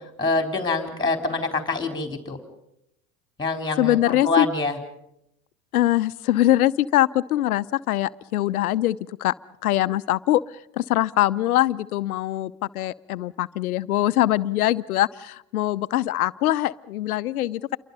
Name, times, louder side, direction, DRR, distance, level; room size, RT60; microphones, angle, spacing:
voice 1, 0.2-2.4 3.4-4.0 4.2-4.8, left 3 dB, 10° left, 5 dB, 3.8 m, -25 dB
voice 2, 3.8-4.5 5.7-9.3 9.6-10.4 10.8-17.8, left 14 dB, 85° left, 15 dB, 0.8 m, -23 dB
28.5 x 23.5 x 5.5 m, 0.81 s
hypercardioid pair, 85°, 43 cm